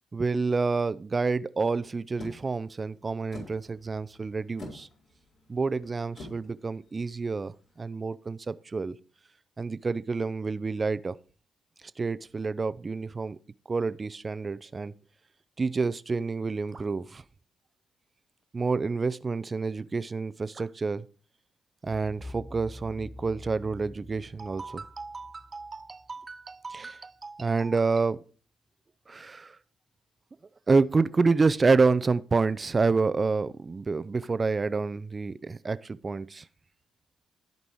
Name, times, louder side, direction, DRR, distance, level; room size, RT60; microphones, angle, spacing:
voice 1, 0.1-4.9 5.5-8.9 9.6-11.2 12.0-13.4 13.7-14.9 15.6-17.2 18.5-21.0 21.8-28.2 29.1-29.6 30.7-36.4, right 4 dB, 35° right, 0.7 m, -28 dB
sound 1, 2.2-7.8, left 2 dB, 60° left, 4.1 m, -48 dB
sound 2, 21.8-26.7, left 1 dB, 15° left, 0.6 m, -46 dB
14.5 x 5.3 x 4.7 m
hypercardioid pair, 45°, 0 cm